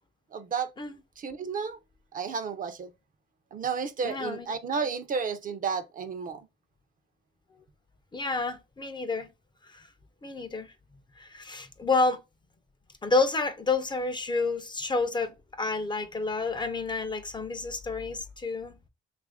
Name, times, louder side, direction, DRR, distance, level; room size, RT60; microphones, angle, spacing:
voice 1, 0.3-0.7 1.2-1.8 2.1-2.9 3.5-6.5, right 5 dB, 45° right, 0.5 m, -32 dB
voice 2, 4.0-4.5 8.1-9.3 9.7-9.9 10.2-10.7 11.2-12.2 13.0-18.7, left 3 dB, 25° left, 0.5 m, -29 dB
2.9 x 2.5 x 3.3 m
cardioid pair, 90°, 20 cm